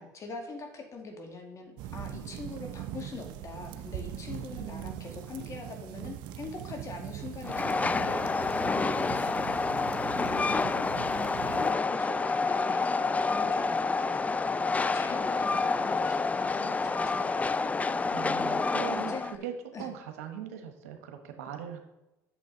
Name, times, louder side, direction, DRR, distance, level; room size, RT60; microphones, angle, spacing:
voice 1, 0.0-9.4 10.5-18.6 18.9-19.5 19.7-19.9, left 3 dB, 40° left, 3 dB, 2.0 m, -43 dB
sound 1, 1.8-11.7, right 11 dB, 70° right, 0.6 m, -41 dB
voice 2, 4.6-5.1 10.1-11.1 18.1-21.8, right 8 dB, 90° right, 5 dB, 1.2 m, -41 dB
Train, 7.4-19.4, left 4 dB, 20° left, 0.4 m, -28 dB
8.4 x 6.7 x 4.0 m, 0.99 s
supercardioid pair, 80°, 8 cm